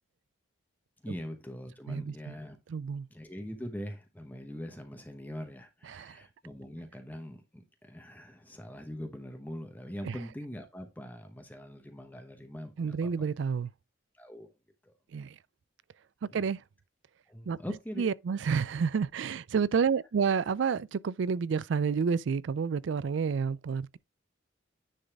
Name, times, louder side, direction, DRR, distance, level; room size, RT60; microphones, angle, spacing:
voice 1, 1.0-2.6 3.1-13.3 14.1-14.5 14.8-14.9 16.3-16.5 17.3-18.1, equal, 10° left, 1.0 m, -42 dB
voice 2, 1.9-2.3 2.7-3.1 5.9-6.2 10.0-10.2 12.8-13.7 15.1-15.4 16.2-16.6 17.5-17.6 18.0-24.0, right 6 dB, 70° right, 0.4 m, -29 dB
9.9 x 4.0 x 3.5 m
head